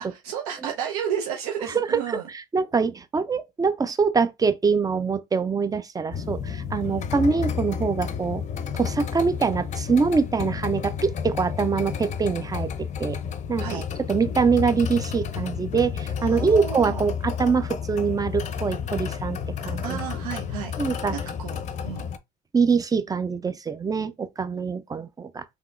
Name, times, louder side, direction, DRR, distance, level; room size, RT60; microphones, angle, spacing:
voice 1, 0.1-2.3 6.9-7.1 13.6-13.9 16.2-17.0 19.8-21.6 21.8-22.1, right 8 dB, 90° right, 0.8 m, -32 dB
voice 2, 2.5-8.4 8.7-12.7 13.0-13.2 13.5-20.0 20.8-21.1 22.5-25.4, right 5 dB, 20° right, 0.5 m, -24 dB
sound 1, 6.1-22.2, left 7 dB, 40° left, 0.5 m, -31 dB
3.5 x 2.8 x 2.4 m
supercardioid pair, 90°, 18 cm